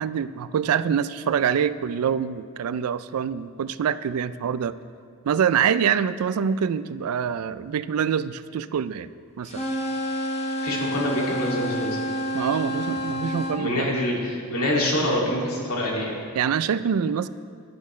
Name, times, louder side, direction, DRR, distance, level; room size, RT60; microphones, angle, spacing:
voice 1, 0.0-4.7 5.2-9.1 9.4-9.6 12.3-13.9 16.3-17.3, right 7 dB, 85° right, 15 dB, 0.4 m, -25 dB
sound 1, 9.5-13.6, equal, 30° left, 1.0 m, -28 dB
voice 2, 10.6-12.1 12.6-12.7 13.5-16.2, left 1 dB, 85° left, -3 dB, 2.3 m, -26 dB
12.5 x 10.5 x 3.1 m, 2.2 s
head